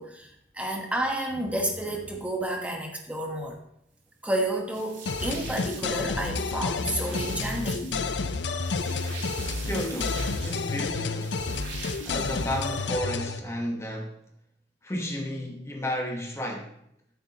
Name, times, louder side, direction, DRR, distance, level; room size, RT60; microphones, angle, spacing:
voice 1, 0.0-3.6 4.2-7.9, right 1 dB, 5° right, 1.2 m, -30 dB
sound 1, 4.7-12.9, right 4 dB, 85° right, 3.0 m, -44 dB
sound 2, 5.1-13.4, left 4 dB, 70° left, 0.6 m, -30 dB
voice 2, 9.6-11.4 12.0-14.2 14.8-16.7, equal, 15° left, 1.1 m, -33 dB
14.0 x 7.9 x 2.9 m
head